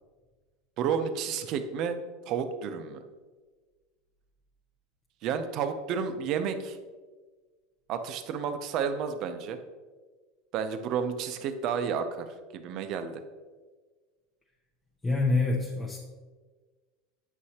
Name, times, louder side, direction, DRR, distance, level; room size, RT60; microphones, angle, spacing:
voice 1, 0.8-2.0 2.3-3.0 5.2-6.8 7.9-9.6 10.5-12.3 12.5-13.2, right 7 dB, 45° right, 8 dB, 0.6 m, -31 dB
voice 2, 15.0-16.0, left 3 dB, 10° left, -3 dB, 0.7 m, -26 dB
8.9 x 6.4 x 2.9 m, 1.4 s
supercardioid pair, 140°, 0 cm